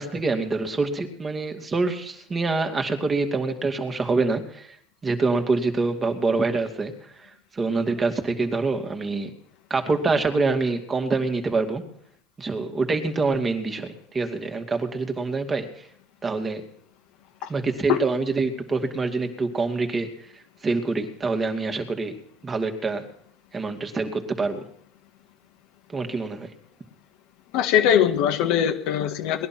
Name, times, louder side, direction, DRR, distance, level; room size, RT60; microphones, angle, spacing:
voice 1, 0.0-4.8 5.0-9.3 9.7-11.8 12.4-15.7 16.2-16.6 17.5-22.1 22.4-23.0 23.5-24.6 25.9-26.5, right 3 dB, 20° right, 6 dB, 2.4 m, -26 dB
voice 2, 27.5-29.5, left 9 dB, 65° left, 5 dB, 1.9 m, -21 dB
20.0 x 11.0 x 6.1 m, 0.66 s
supercardioid pair, 110°, 0 cm